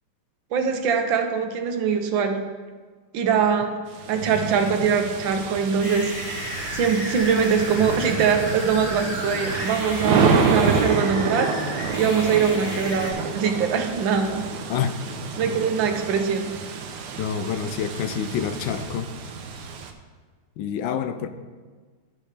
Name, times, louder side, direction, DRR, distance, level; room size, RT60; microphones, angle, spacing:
voice 1, 0.5-2.4 3.1-3.8 4.1-6.3 6.7-11.6 12.0-14.5 15.4-16.5, right 6 dB, 80° right, 5 dB, 1.6 m, -22 dB
sound 1, 3.9-19.9, right 5 dB, 65° right, 1.2 m, -28 dB
sound 2, 5.8-13.1, equal, 40° left, 2.0 m, -33 dB
voice 2, 17.2-19.1 20.6-21.3, left 8 dB, 80° left, 10 dB, 1.2 m, -27 dB
13.5 x 5.4 x 3.3 m, 1.5 s
omnidirectional pair, 2.1 m